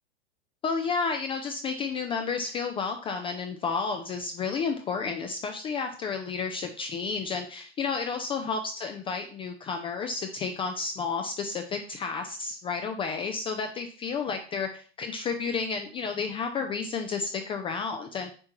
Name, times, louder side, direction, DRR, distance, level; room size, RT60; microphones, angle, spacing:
voice 1, 0.6-18.3, left 5 dB, 15° left, 5 dB, 0.4 m, -31 dB
7.6 x 4.3 x 3.0 m, 0.41 s
hypercardioid pair, 115°, 33 cm